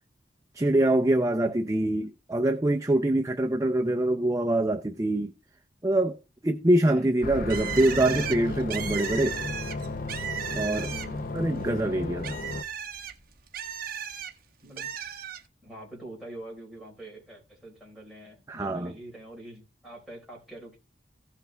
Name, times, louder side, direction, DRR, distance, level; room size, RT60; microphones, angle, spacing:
voice 1, 0.5-5.3 5.8-9.4 10.5-10.9 11.3-12.4 18.5-18.9, right 1 dB, 15° right, 0.5 m, -24 dB
voice 2, 6.8-7.1 10.9-11.2 14.6-14.9 15.6-20.8, right 1 dB, ahead, 4.4 m, -44 dB
sound 1, 7.2-12.6, left 2 dB, 45° left, 0.6 m, -34 dB
Bird, 7.5-11.3 11.7-14.3 14.8-15.4, right 8 dB, 50° right, 1.0 m, -35 dB
16.0 x 5.8 x 3.3 m
head